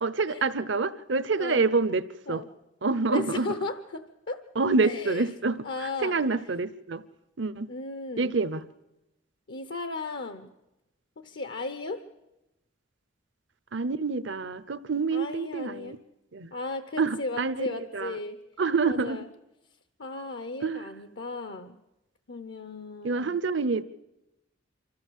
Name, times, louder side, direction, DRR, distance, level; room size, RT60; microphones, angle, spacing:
voice 1, 0.0-2.4 2.8-3.5 4.6-7.0 7.4-7.7 8.2-8.7 13.7-16.0 16.3-16.5 17.0-18.2 18.6-19.2 20.6-20.9 23.0-23.8, right 4 dB, 65° right, 14 dB, 0.8 m, -27 dB
voice 2, 3.1-4.4 4.8-5.3 5.6-6.2 7.7-8.3 9.5-10.5 11.2-12.0 15.1-16.0 16.5-18.4 18.9-19.3 20.0-21.8 22.3-23.4, left 3 dB, 60° left, 9 dB, 0.8 m, -35 dB
25.0 x 14.5 x 7.4 m, 0.95 s
head